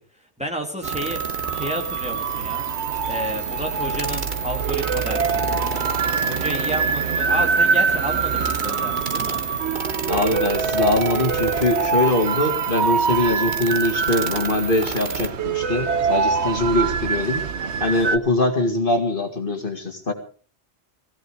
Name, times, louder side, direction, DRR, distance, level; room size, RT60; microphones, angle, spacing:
voice 1, 0.4-1.2 1.5-2.7 3.1-5.6 6.3-9.4, equal, 5° right, 2 dB, 2.3 m, -31 dB
sound 1, 0.8-15.3, right 5 dB, 45° right, 1.3 m, -31 dB
sound 2, 0.8-18.2, right 5 dB, 75° right, 1.3 m, -24 dB
voice 2, 10.1-17.4 17.8-20.1, left 2 dB, 50° left, 4 dB, 2.4 m, -22 dB
17.0 x 16.5 x 4.8 m, 0.41 s
omnidirectional pair, 1.2 m